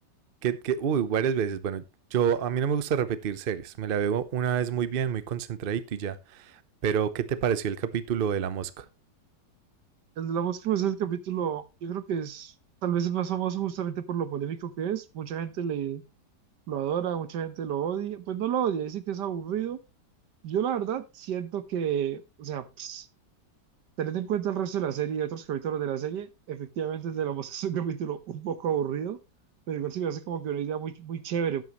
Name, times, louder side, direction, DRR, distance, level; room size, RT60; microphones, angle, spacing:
voice 1, 0.4-1.8 2.1-8.9, right 8 dB, 50° right, 0.7 m, -28 dB
voice 2, 10.2-12.5 12.8-16.0 16.7-19.8 20.4-23.1 24.0-29.2 29.7-31.6, right 9 dB, 80° right, 1.6 m, -30 dB
12.5 x 9.5 x 3.0 m
omnidirectional pair, 1.8 m